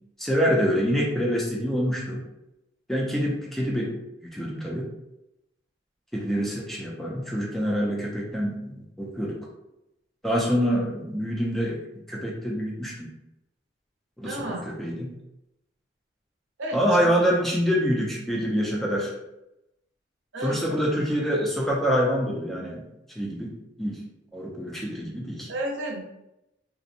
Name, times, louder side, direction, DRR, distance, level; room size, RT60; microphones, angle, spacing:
voice 1, 0.2-2.2 2.9-4.0 4.3-4.9 6.1-9.4 10.2-11.8 12.1-13.1 14.2-15.1 16.7-19.1 20.4-22.8 23.2-24.0 24.3-25.5, equal, ahead, -3 dB, 0.4 m, -26 dB
voice 2, 14.2-14.6 16.6-17.1 20.3-20.6 25.5-26.0, right 1 dB, 80° right, 0 dB, 0.6 m, -32 dB
2.5 x 2.0 x 2.7 m, 0.89 s
head